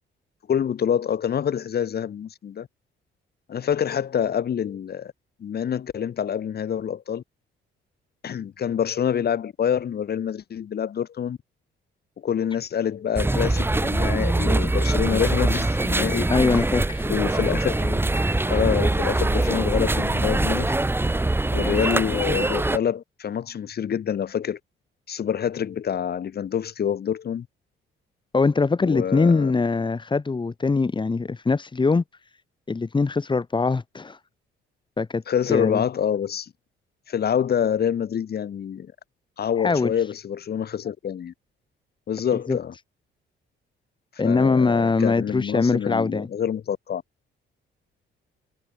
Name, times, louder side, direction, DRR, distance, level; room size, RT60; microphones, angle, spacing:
voice 1, 0.5-2.7 3.5-5.1 5.4-7.2 8.2-11.4 12.2-16.7 17.1-18.0 18.5-20.8 21.5-24.6 25.1-27.5 28.8-29.5 35.3-36.5 37.1-38.9 39.4-41.3 42.1-42.7 44.2-47.0, left 8 dB, 50° left, 7.7 m, -26 dB
sound 1, 13.2-22.8, right 2 dB, 10° right, 3.2 m, -23 dB
voice 2, 16.3-17.1 28.3-32.0 32.7-34.2 35.0-35.2 35.5-35.8 39.6-39.9 42.5-42.6 44.2-46.3, left 4 dB, 25° left, 5.5 m, -22 dB
cardioid pair, 120°, 20 cm